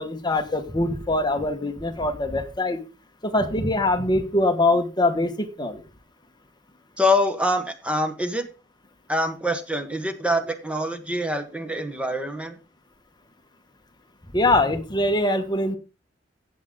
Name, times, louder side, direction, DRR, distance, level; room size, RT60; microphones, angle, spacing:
voice 1, 0.0-2.8 3.2-5.8 14.3-15.8, left 2 dB, 25° left, 7 dB, 1.4 m, -23 dB
voice 2, 7.0-8.5 9.1-12.6, left 1 dB, 5° right, 7 dB, 1.2 m, -25 dB
16.0 x 7.8 x 3.8 m, 0.31 s
head